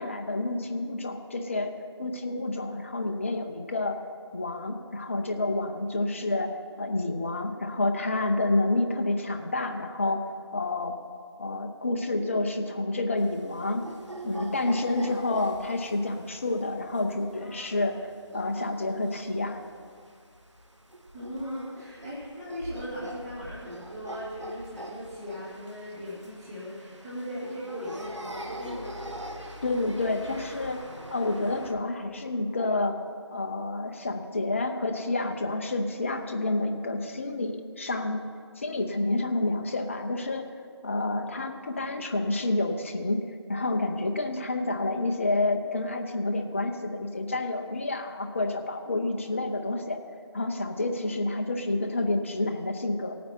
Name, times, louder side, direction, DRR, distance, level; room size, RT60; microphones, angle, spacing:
voice 1, 0.0-1.7 2.0-4.0 4.3-6.5 6.8-10.2 10.5-11.0 11.4-13.9 14.2-18.1 18.3-19.6 29.6-30.8 31.1-33.0 33.3-38.2 38.6-40.4 40.8-43.2 43.5-50.0 50.3-53.1, left 2 dB, 25° left, 5 dB, 0.6 m, -29 dB
sound 1, 13.2-31.7, right 1 dB, 85° right, 1.5 m, -44 dB
voice 2, 21.1-29.0, equal, 10° right, -9 dB, 1.3 m, -38 dB
17.0 x 9.4 x 4.4 m, 2.2 s
figure-of-eight pair, 165°, 15 cm